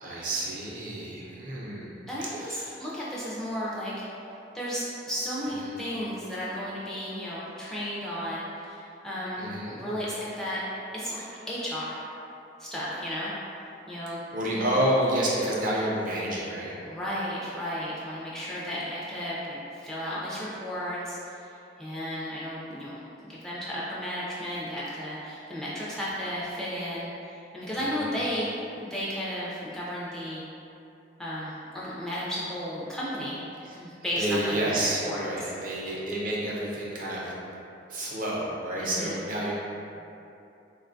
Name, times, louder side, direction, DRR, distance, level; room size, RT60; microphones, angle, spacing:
voice 1, 0.0-1.9 2.3-2.8 5.5-5.8 9.4-9.8 14.3-16.7 27.7-28.1 33.6-33.8 34.1-37.3 37.9-39.5, right 1 dB, 50° right, -5 dB, 0.5 m, -29 dB
voice 2, 2.1-3.9 4.5-10.6 10.9-12.0 12.6-13.3 13.9-14.2 14.5-14.6 16.8-21.5 21.8-23.0 23.3-30.4 31.2-33.4 33.8-34.4 34.6-35.2 38.8-39.2, equal, ahead, -8 dB, 0.3 m, -34 dB
3.6 x 2.2 x 2.5 m, 2.8 s
head